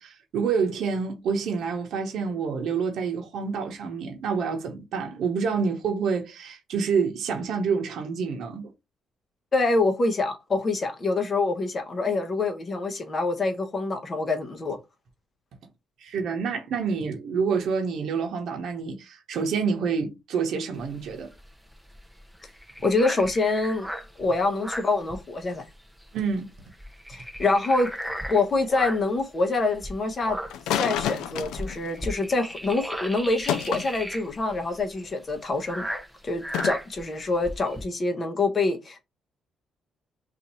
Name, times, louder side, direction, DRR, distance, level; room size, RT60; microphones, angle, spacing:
voice 1, 0.0-8.7 16.0-21.3 26.1-26.5, right 5 dB, 70° right, 0.8 m, -28 dB
voice 2, 9.5-14.8 22.8-23.9 24.2-25.6 27.1-27.9 28.3-30.4 30.8-35.8 36.2-39.0, left 3 dB, 40° left, 0.9 m, -26 dB
sound 1, 20.8-25.7 26.0-26.2 26.5-29.2 29.7-37.8, equal, 5° right, 0.7 m, -36 dB
sound 2, 30.5-32.5 33.5-33.9 36.5-36.7, left 10 dB, 90° left, 0.4 m, -29 dB
2.7 x 2.5 x 4.2 m
cardioid pair, 90°, 0 cm